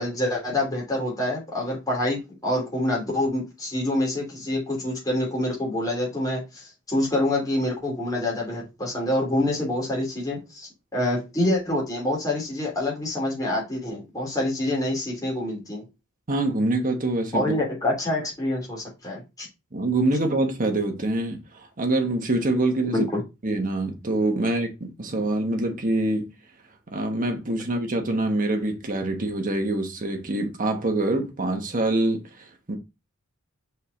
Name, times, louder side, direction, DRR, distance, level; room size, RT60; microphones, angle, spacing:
voice 1, 0.0-15.8 17.3-19.5 22.9-23.2, left 1 dB, 15° left, 3.1 m, -26 dB
voice 2, 16.3-17.6 19.7-23.0 23.4-26.3 26.9-32.8, right 2 dB, 40° right, 1.3 m, -25 dB
5.4 x 4.6 x 4.0 m
head